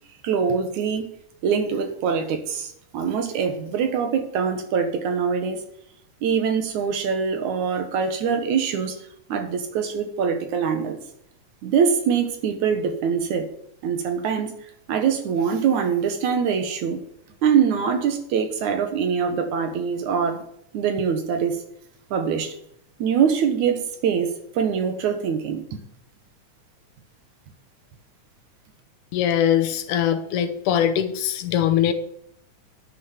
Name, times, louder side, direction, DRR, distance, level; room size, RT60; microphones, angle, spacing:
voice 1, 0.2-1.1 1.4-5.6 6.2-9.0 9.3-11.0 11.6-13.4 13.8-14.5 14.9-17.0 17.4-20.4 20.7-21.6 22.1-22.6 23.0-25.8, right 6 dB, 70° right, 6 dB, 2.7 m, -23 dB
voice 2, 29.1-31.9, left 10 dB, 80° left, 10 dB, 2.4 m, -22 dB
10.0 x 6.6 x 7.1 m, 0.73 s
omnidirectional pair, 3.6 m